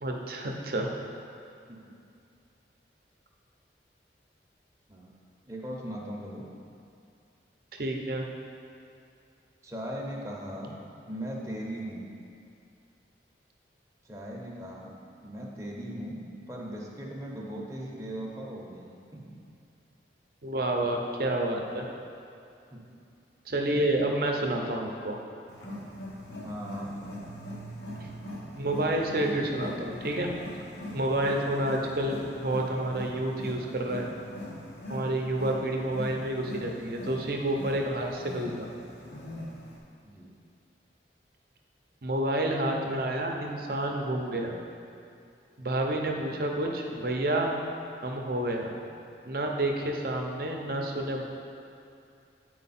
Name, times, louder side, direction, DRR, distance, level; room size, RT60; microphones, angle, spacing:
voice 1, 0.0-0.9 7.7-8.2 20.4-21.9 23.5-25.2 28.0-28.1 28.6-30.3 30.9-34.1 34.9-38.7 42.0-44.6 45.6-47.5 48.0-48.7 49.3-51.3, right 1 dB, 55° right, 1 dB, 0.7 m, -29 dB
voice 2, 5.5-6.5 9.6-10.7 11.1-12.1 14.0-14.9 15.2-19.4 22.7-22.8 26.4-27.2 40.0-40.3 46.2-46.3, equal, 15° right, -3 dB, 0.8 m, -39 dB
Wild animals, 25.5-39.8, left 1 dB, 80° left, 1.1 m, -41 dB
9.1 x 4.6 x 4.2 m, 2.5 s
head